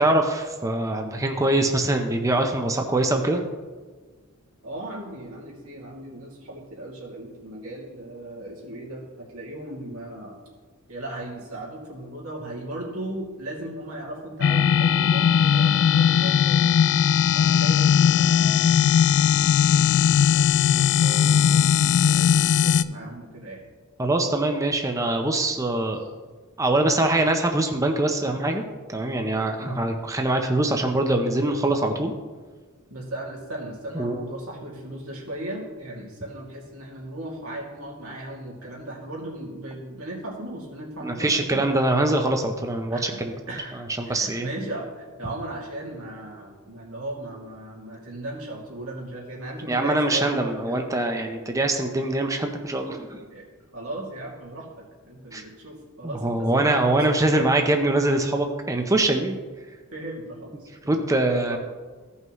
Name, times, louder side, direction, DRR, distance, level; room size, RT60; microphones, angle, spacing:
voice 1, 0.0-3.4 24.0-26.0 26.6-28.6 28.9-32.1 33.9-34.2 41.0-43.3 44.0-44.5 49.7-53.2 55.3-55.4 56.0-59.3 60.9-61.6, right 2 dB, 15° right, 4 dB, 0.6 m, -23 dB
voice 2, 4.6-10.4 10.9-16.8 17.3-18.8 19.2-23.6 25.9-26.1 29.6-29.8 32.9-41.7 42.9-43.2 43.5-50.8 53.3-53.5 53.7-57.5 59.9-61.0 61.5-61.6, right 1 dB, 90° right, -3 dB, 2.5 m, -37 dB
sound 1, 14.4-22.8, left 7 dB, 55° left, 0.3 m, -19 dB
15.5 x 5.5 x 3.1 m, 1.4 s
head